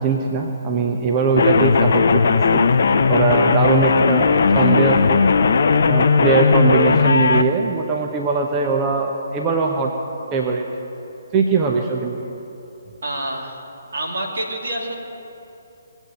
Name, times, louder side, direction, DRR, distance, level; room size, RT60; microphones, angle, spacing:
voice 1, 0.0-2.6 3.1-5.2 5.9-9.9 10.3-10.7 11.3-12.2, right 4 dB, 20° right, 1 dB, 0.9 m, -21 dB
sound 1, 1.4-7.4, left 5 dB, 55° left, 0.6 m, -16 dB
voice 2, 13.0-13.6 13.9-15.0, right 1 dB, 65° right, 0 dB, 2.6 m, -27 dB
19.5 x 8.2 x 7.8 m, 2.9 s
figure-of-eight pair, 135°, 0 cm